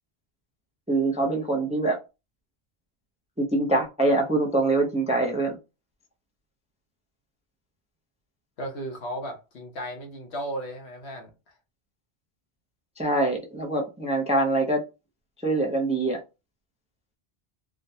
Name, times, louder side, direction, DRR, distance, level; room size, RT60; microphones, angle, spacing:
voice 1, 0.9-2.0 3.4-5.6 13.0-14.8 15.4-16.2, right 2 dB, 10° right, 0.4 m, -24 dB
voice 2, 8.6-11.3, right 1 dB, 80° left, 1.2 m, -35 dB
3.5 x 2.2 x 2.7 m
omnidirectional pair, 1.1 m